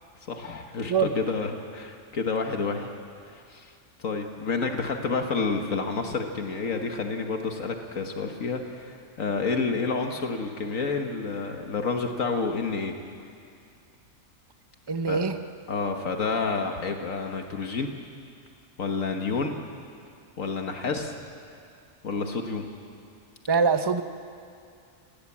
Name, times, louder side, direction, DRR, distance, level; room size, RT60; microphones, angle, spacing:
voice 1, 0.3-2.9 3.3-3.7 4.0-12.9 15.1-15.2 15.7-17.9 18.8-19.6 20.4-21.2 22.0-22.6, left 4 dB, 75° left, 4 dB, 1.8 m, -29 dB
voice 2, 14.9-15.4 23.5-24.0, right 5 dB, 20° right, 9 dB, 0.8 m, -23 dB
29.5 x 17.5 x 8.6 m, 2.4 s
omnidirectional pair, 1.4 m